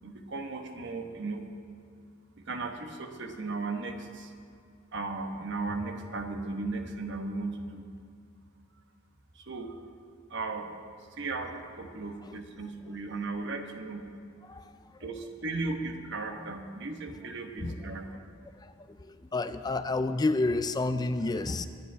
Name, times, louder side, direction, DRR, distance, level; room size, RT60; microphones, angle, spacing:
voice 1, 0.0-1.5 2.5-4.3 4.9-7.9 9.3-9.8 10.3-10.7 11.2-14.0 15.0-18.1, right 3 dB, 60° right, 4 dB, 1.2 m, -36 dB
voice 2, 17.6-18.0 18.5-21.7, left 2 dB, 20° left, 10 dB, 0.4 m, -30 dB
24.5 x 10.5 x 3.4 m, 2.2 s
head